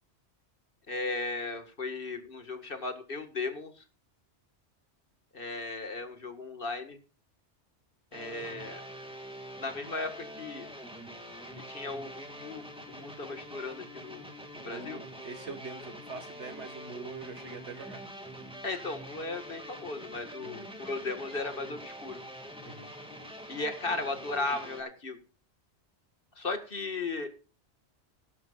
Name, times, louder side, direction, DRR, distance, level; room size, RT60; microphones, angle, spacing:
voice 1, 0.9-3.8 5.3-7.0 8.1-8.8 9.6-10.7 11.7-14.3 14.6-15.0 18.6-22.2 23.5-25.2 26.4-27.3, left 3 dB, 50° left, 7 dB, 2.0 m, -36 dB
sound 1, 8.1-24.8, equal, 5° right, 2.0 m, -45 dB
voice 2, 14.6-18.0 20.4-20.7 22.6-22.9, right 4 dB, 80° right, 7 dB, 2.1 m, -44 dB
20.0 x 11.0 x 2.5 m, 0.35 s
omnidirectional pair, 1.2 m